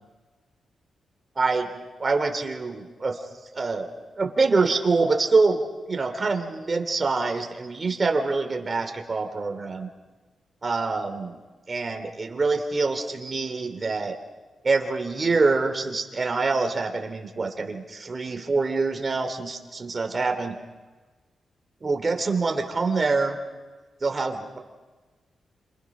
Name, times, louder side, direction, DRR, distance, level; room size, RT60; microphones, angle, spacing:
voice 1, 1.3-3.2 3.5-5.6 5.9-9.9 10.6-11.4 11.7-14.2 14.6-20.6 21.8-23.4 24.0-24.6, right 3 dB, 30° right, 4 dB, 3.0 m, -25 dB
28.5 x 26.5 x 6.1 m, 1.3 s
wide cardioid pair, 125°, 0 cm